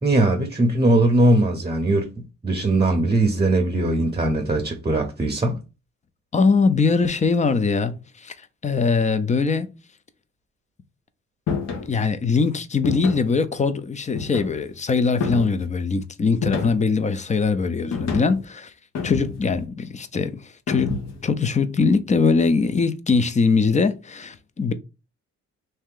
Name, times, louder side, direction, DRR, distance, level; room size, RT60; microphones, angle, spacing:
voice 1, 0.0-2.1 2.4-5.6, right 1 dB, 20° right, 0.8 m, -20 dB
voice 2, 6.3-8.4 8.6-9.7 11.9-18.7 19.0-20.9 21.2-24.7, left 4 dB, 25° left, 0.5 m, -21 dB
sound 1, 11.5-11.9 12.8-13.3 14.2-14.7 15.2-15.7 16.4-17.0 17.9-18.4 18.9-19.6 20.7-21.3, left 5 dB, 60° left, 1.1 m, -28 dB
3.2 x 2.8 x 3.7 m
cardioid pair, 90°, 30 cm